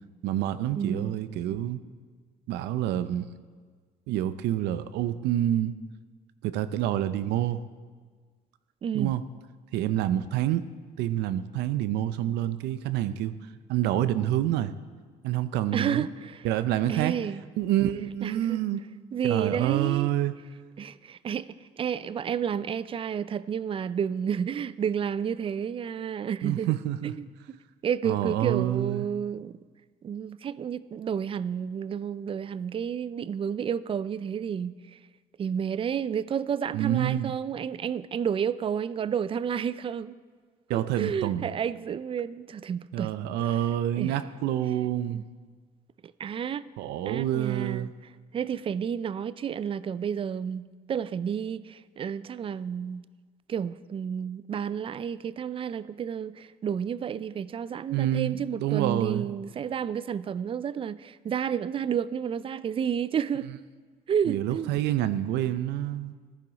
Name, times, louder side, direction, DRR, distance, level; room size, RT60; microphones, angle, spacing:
voice 1, 0.2-1.8 2.5-3.2 4.1-5.7 6.4-7.6 8.9-9.2 9.7-10.6 11.0-13.3 13.7-14.7 15.2-16.1 16.4-17.2 17.6-18.8 19.2-20.3 26.4-27.1 28.0-29.1 36.7-37.4 40.7-41.5 42.9-45.3 46.8-47.9 57.9-59.3 64.3-66.1, right 12 dB, 85° right, 0.6 m, -27 dB
voice 2, 0.7-1.1 8.8-9.1 15.7-16.5 16.9-17.4 18.2-18.6 19.1-20.1 20.8-26.7 27.0-29.6 30.0-34.8 35.4-40.2 40.7-43.1 43.4-43.6 44.0-44.2 45.1-45.2 46.2-46.7 47.0-47.9 48.3-53.0 53.5-63.6 64.1-64.7, right 8 dB, 30° right, 0.4 m, -31 dB
14.5 x 10.5 x 4.0 m
cardioid pair, 110°, 17 cm